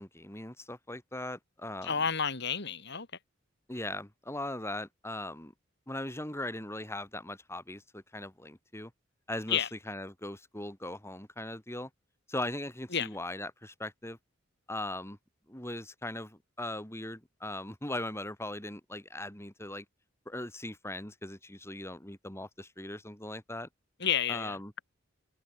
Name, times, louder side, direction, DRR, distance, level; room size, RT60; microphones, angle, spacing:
voice 1, 0.0-2.0 3.7-5.5 5.9-8.9 9.3-11.9 12.3-14.2 14.7-15.2 15.5-19.8 20.3-23.7 24.3-24.7, left 1 dB, 15° left, 4.7 m, -39 dB
voice 2, 1.8-3.1 9.5-9.7 12.9-13.1 24.0-24.6, left 7 dB, 60° left, 3.0 m, -30 dB
head